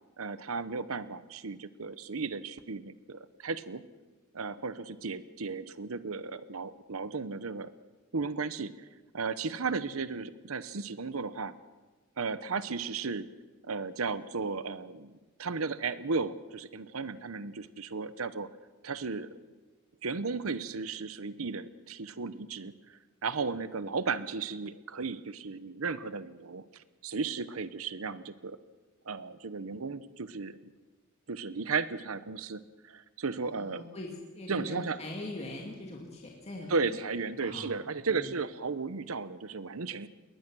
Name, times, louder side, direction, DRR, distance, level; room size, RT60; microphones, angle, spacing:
voice 1, 0.2-3.8 4.3-7.7 8.1-8.9 9.1-11.5 12.2-13.3 13.7-18.5 18.8-19.3 20.0-28.6 29.1-30.7 31.3-33.8 34.5-35.0 36.7-40.1, right 4 dB, 75° right, 14 dB, 0.9 m, -35 dB
voice 2, 33.6-34.1 34.3-36.7 37.4-37.7 38.1-38.3, left 1 dB, 30° left, -1 dB, 2.4 m, -41 dB
21.0 x 19.5 x 6.2 m, 1.3 s
head